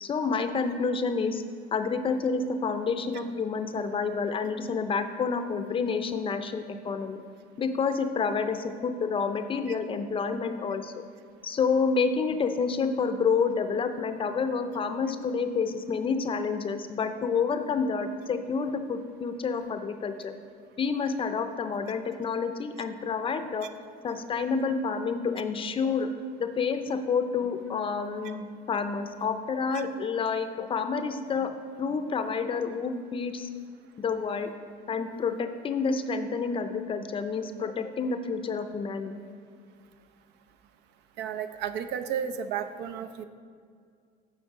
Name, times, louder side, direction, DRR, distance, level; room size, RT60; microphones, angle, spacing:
voice 1, 0.0-1.4 1.7-7.2 7.6-10.9 11.4-20.3 20.8-23.7 24.0-26.1 26.4-31.5 31.8-33.5 34.0-34.5 34.9-39.1, left 5 dB, 30° left, 8 dB, 0.5 m, -29 dB
voice 2, 41.2-43.2, right 8 dB, 70° right, 10 dB, 0.5 m, -33 dB
8.0 x 4.5 x 5.9 m, 2.1 s
cardioid pair, 115°, 18 cm